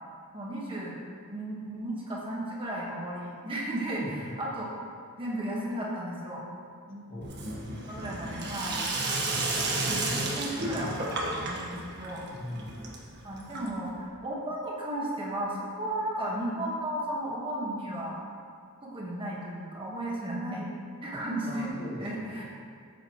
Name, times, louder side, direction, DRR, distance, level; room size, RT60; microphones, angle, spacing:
voice 1, 0.3-1.0 1.3-4.0 4.4-4.7 5.2-6.4 6.9-7.1 7.9-8.8 9.3-12.2 13.2-18.2 18.8-20.7 21.0-21.7 22.0-22.4, right 1 dB, 25° right, -5 dB, 1.7 m, -34 dB
voice 2, 7.1-7.5 12.3-12.8 21.4-22.4, left 1 dB, 40° left, -5 dB, 2.2 m, -41 dB
Sink (filling or washing), 7.2-14.0, right 2 dB, 50° right, 1.6 m, -32 dB
15.0 x 8.5 x 3.2 m, 2.3 s
head